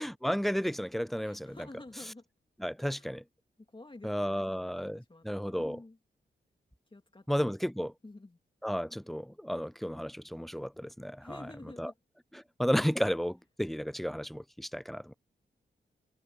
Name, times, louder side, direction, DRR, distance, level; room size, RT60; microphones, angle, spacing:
voice 1, 0.0-1.6 2.6-3.2 4.0-5.8 7.3-7.9 8.6-11.4 11.8-11.9 12.6-15.1, equal, ahead, 0.4 m, -33 dB
voice 2, 1.2-2.2 2.8-3.1 3.7-6.0 6.9-7.5 8.0-8.4 11.2-12.0, left 2 dB, 25° left, 2.5 m, -50 dB
supercardioid pair, 40°, 19 cm